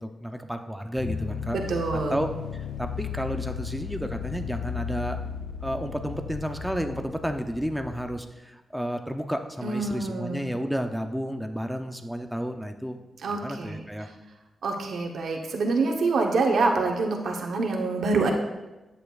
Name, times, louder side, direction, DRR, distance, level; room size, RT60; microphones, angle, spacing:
voice 1, 0.0-1.6 2.1-5.2 5.6-13.0 13.3-14.1, equal, ahead, 5 dB, 0.5 m, -31 dB
sound 1, 1.0-8.2, left 7 dB, 65° left, 0.4 m, -35 dB
voice 2, 1.5-2.2 9.6-10.5 13.2-13.8 14.6-18.3, right 3 dB, 70° right, 1 dB, 0.8 m, -26 dB
10.5 x 8.5 x 2.4 m, 1.1 s
wide cardioid pair, 170°, 0 cm